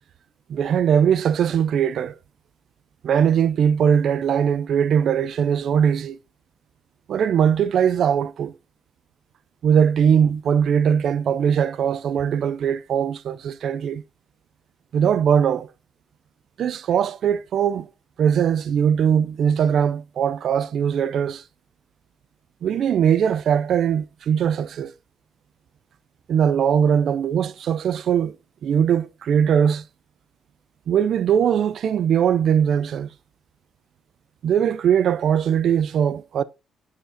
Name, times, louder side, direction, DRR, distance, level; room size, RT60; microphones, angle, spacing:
voice 1, 0.5-2.1 3.0-6.2 7.1-8.5 9.6-14.0 14.9-15.7 16.6-17.9 18.2-21.4 22.6-24.9 26.3-28.3 28.6-29.8 30.9-33.1 34.4-36.4, right 8 dB, 50° right, 0.4 m, -20 dB
7.0 x 6.4 x 2.7 m
cardioid pair, 160°, 0 cm